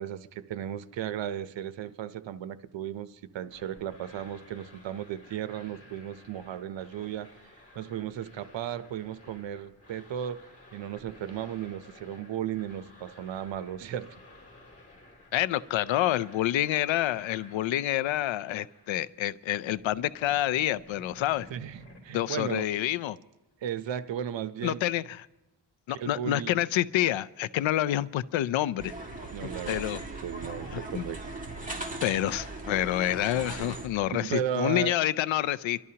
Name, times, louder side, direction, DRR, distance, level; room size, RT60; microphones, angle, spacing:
voice 1, 0.0-7.3 7.8-10.4 10.7-14.2 21.5-22.7 23.6-24.8 25.9-26.6 29.3-29.8 30.2-31.2 34.1-34.9, right 10 dB, 75° right, 0.7 m, -35 dB
sound 1, 3.5-19.2 19.5-22.0, left 2 dB, 30° left, 4.0 m, -54 dB
voice 2, 15.3-21.5 22.1-23.2 24.6-25.3 25.9-28.9 29.4-30.0 30.7-31.1 32.0-35.8, left 13 dB, 85° left, 0.5 m, -28 dB
sound 2, 28.8-33.9, right 2 dB, 15° right, 1.9 m, -39 dB
26.0 x 12.5 x 2.8 m
wide cardioid pair, 125°, 45 cm